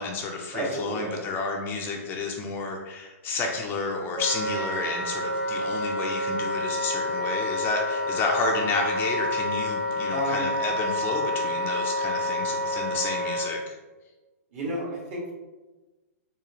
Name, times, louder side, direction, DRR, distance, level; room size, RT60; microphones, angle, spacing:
voice 1, 0.0-13.7, left 3 dB, 25° left, 1 dB, 0.4 m, -31 dB
voice 2, 0.5-1.2 10.1-10.4 14.5-15.3, right 1 dB, 50° right, -4 dB, 1.5 m, -31 dB
Wind instrument woodwind instrument, 4.2-13.5, left 1 dB, 10° right, 0.8 m, -28 dB
4.1 x 2.3 x 2.8 m, 1.2 s
hypercardioid pair, 130°, 8 cm